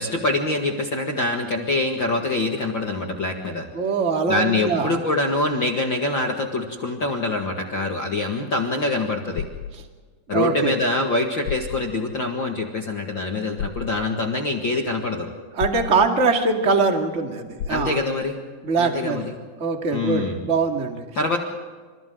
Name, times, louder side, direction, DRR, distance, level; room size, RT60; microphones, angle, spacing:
voice 1, 0.0-3.7 4.3-9.4 10.3-15.3 17.7-18.4 18.8-19.3 19.9-20.4 21.1-21.4, left 2 dB, 40° left, 1 dB, 2.0 m, -25 dB
voice 2, 3.7-4.9 10.3-10.8 15.5-18.0 18.6-19.2 19.6-21.0, right 4 dB, 25° right, 3 dB, 1.9 m, -22 dB
sound 1, 9.4-9.8 11.0-11.1 11.5-11.9 13.6-13.9 15.6-16.0 17.6-18.0, left 7 dB, 70° left, 2.4 m, -31 dB
29.5 x 28.0 x 3.9 m, 1.4 s
omnidirectional pair, 4.3 m